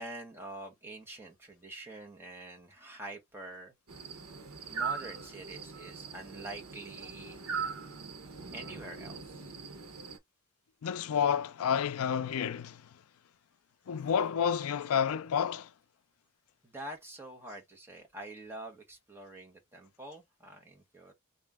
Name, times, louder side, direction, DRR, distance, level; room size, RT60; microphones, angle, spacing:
voice 1, 0.0-3.7 4.7-7.4 8.5-9.5 16.6-21.1, right 1 dB, 10° right, 1.3 m, -46 dB
sound 1, 3.9-10.2, right 6 dB, 80° right, 0.9 m, -40 dB
voice 2, 10.8-13.0 13.9-15.7, left 7 dB, 80° left, 0.4 m, -30 dB
3.0 x 2.6 x 3.6 m
head